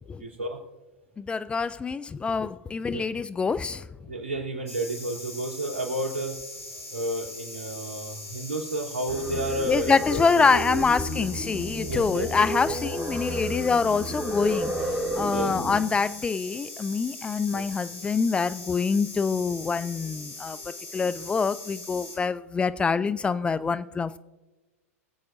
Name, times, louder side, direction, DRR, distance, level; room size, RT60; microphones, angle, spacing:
voice 1, 0.2-0.6 2.8-3.0 4.1-6.4 6.9-10.5 11.9-12.3 15.3-15.5 17.5-17.6, right 2 dB, 65° right, -1 dB, 3.4 m, -31 dB
voice 2, 1.2-3.8 9.7-14.7 15.2-20.6 20.9-24.2, left 5 dB, 15° left, 15 dB, 0.3 m, -25 dB
sound 1, 4.7-22.2, left 2 dB, 70° left, 3.8 m, -41 dB
Singing, 9.1-15.8, equal, 20° right, 2.6 m, -31 dB
24.0 x 8.4 x 2.6 m, 1.2 s
figure-of-eight pair, 95°, 8 cm